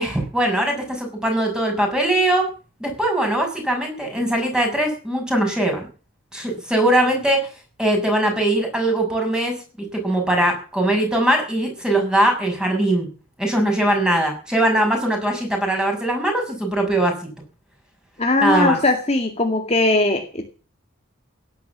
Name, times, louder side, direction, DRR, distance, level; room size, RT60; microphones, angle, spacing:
voice 1, 0.0-2.5 2.8-5.9 6.3-7.5 7.8-13.1 13.4-17.3 18.4-18.8, right 1 dB, 5° right, 2 dB, 6.4 m, -21 dB
voice 2, 18.2-20.5, left 2 dB, 30° left, 3 dB, 2.2 m, -19 dB
17.5 x 10.5 x 7.4 m, 0.37 s
head